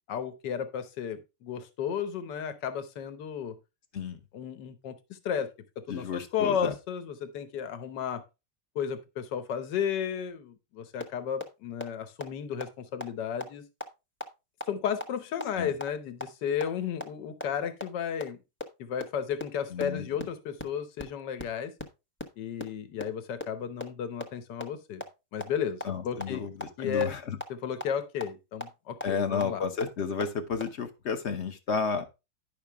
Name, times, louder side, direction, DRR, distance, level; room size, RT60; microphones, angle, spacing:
voice 1, 0.1-3.6 4.3-5.5 5.8-8.2 8.7-13.6 14.7-18.4 18.8-21.7 22.4-25.0 25.3-26.4 26.8-27.1 27.5-29.6, left 8 dB, 70° left, 11 dB, 1.6 m, -33 dB
voice 2, 5.9-6.7 15.6-15.7 19.7-20.1 25.8-27.4 29.0-32.0, left 5 dB, 45° left, 9 dB, 1.0 m, -32 dB
sound 1, 11.0-11.1 11.4-11.5 11.8-11.9 12.2-12.3 12.6-12.7 13.0-13.1 13.4-13.5 13.8-13.9 14.2-14.3 14.6-14.7 15.0-15.1 15.4-15.5 15.8-15.9 16.2-16.3 16.6-16.7 17.0-17.1 17.4-17.5 17.8-17.9 18.2-18.3 18.6-18.7 19.0-19.1 19.4-19.5 19.8-19.9 20.2-20.3 20.6-20.7 21.0-21.1 21.4-21.5 21.8-21.9 22.2-22.3 22.6-22.7 23.0-23.1 23.4-23.5 23.8-23.9 24.2-24.3 24.6-24.7 25.0-25.1 25.4-25.5 25.8-25.9 26.2-26.3 26.6-26.7 27.0-27.1 27.4-27.5 27.8-27.9 28.2-28.3 28.6-28.7 29.0-29.1 29.4-29.5 29.8-29.9 30.2-30.3 30.6-30.7, left 2 dB, 10° left, 0.8 m, -34 dB
10.5 x 5.8 x 3.5 m, 0.26 s
omnidirectional pair, 2.0 m